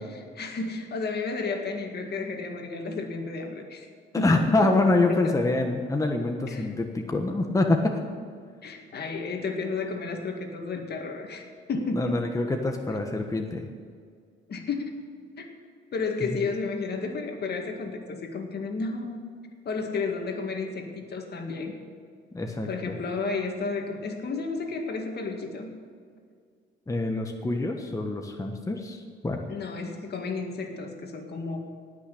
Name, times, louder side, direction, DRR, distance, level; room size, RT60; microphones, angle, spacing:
voice 1, 0.1-3.9 4.2-4.7 5.1-5.3 6.5-6.7 8.6-12.2 14.5-15.0 15.4-15.5 15.9-19.2 19.7-21.8 22.6-25.7 29.5-31.6, left 4 dB, 55° left, 3 dB, 2.0 m, -32 dB
voice 2, 4.2-7.9 11.9-13.6 22.3-23.0 26.9-29.0 29.2-29.4, left 2 dB, 15° left, 3 dB, 1.3 m, -25 dB
18.5 x 6.2 x 8.5 m, 2.1 s
cardioid pair, 90°, 20 cm